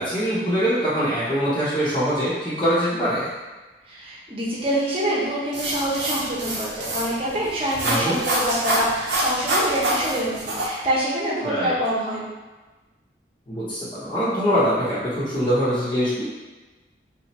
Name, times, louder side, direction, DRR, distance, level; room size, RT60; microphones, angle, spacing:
voice 1, 0.0-3.3 7.8-8.2 11.4-11.7 13.5-16.2, equal, 25° left, -13 dB, 0.7 m, -23 dB
voice 2, 3.9-12.2, right 1 dB, 30° right, -6 dB, 0.8 m, -25 dB
sound 1, 5.5-10.7, right 1 dB, 90° right, 0.8 m, -26 dB
2.9 x 2.5 x 4.1 m, 1.2 s
head